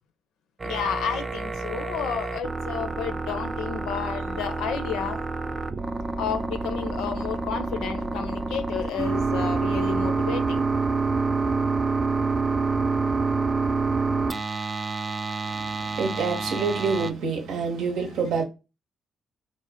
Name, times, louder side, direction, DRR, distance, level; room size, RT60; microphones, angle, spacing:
voice 1, 0.6-5.2 6.2-10.6, left 7 dB, 90° left, 0.5 m, -31 dB
sound 1, 0.6-17.1, right 3 dB, 25° right, 0.3 m, -27 dB
voice 2, 15.4-18.4, right 4 dB, 80° right, 0.9 m, -27 dB
3.2 x 2.1 x 3.4 m
cardioid pair, 90°, 0 cm